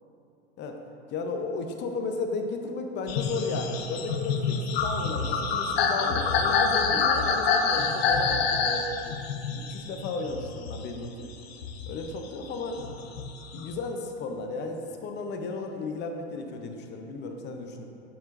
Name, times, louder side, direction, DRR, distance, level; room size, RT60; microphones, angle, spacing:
voice 1, 1.1-8.9 9.5-11.2 11.9-12.9 13.5-17.8, left 3 dB, 30° left, 4 dB, 0.7 m, -34 dB
sound 1, 3.1-11.1 11.5-13.7, left 5 dB, 65° left, 0.8 m, -27 dB
9.3 x 5.6 x 2.6 m, 2.7 s
hypercardioid pair, 95°, 33 cm